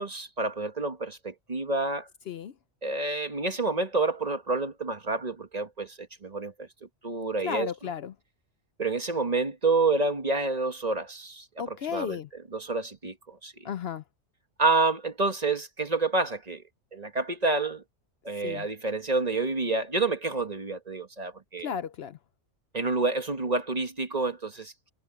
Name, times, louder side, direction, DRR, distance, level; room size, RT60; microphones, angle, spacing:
voice 1, 0.0-2.1 2.8-6.7 7.0-7.7 8.8-11.4 11.9-12.2 12.5-13.5 14.6-16.6 16.9-17.8 18.2-21.7 22.7-24.9, right 3 dB, 35° right, 1.5 m, -28 dB
voice 2, 7.4-8.1 11.6-12.3 13.6-14.0 18.4-18.7 21.6-22.2, left 8 dB, 60° left, 0.8 m, -34 dB
omnidirectional pair, 1.2 m